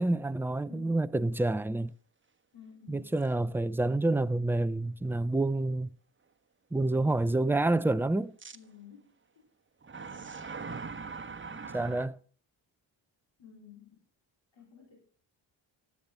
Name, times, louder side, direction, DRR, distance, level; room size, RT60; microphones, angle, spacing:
voice 1, 0.0-1.9 2.9-5.9 6.7-8.3 11.7-12.2, right 2 dB, 5° right, 0.5 m, -28 dB
voice 2, 0.6-1.0 2.5-3.2 8.5-9.5 13.4-14.0 14.5-15.0, left 7 dB, 70° left, 3.7 m, -54 dB
sound 1, 3.1-3.2 3.9-4.0 8.4-8.6 9.8-12.1, right 4 dB, 25° right, 1.1 m, -41 dB
15.5 x 10.5 x 3.4 m
cardioid pair, 75°, 48 cm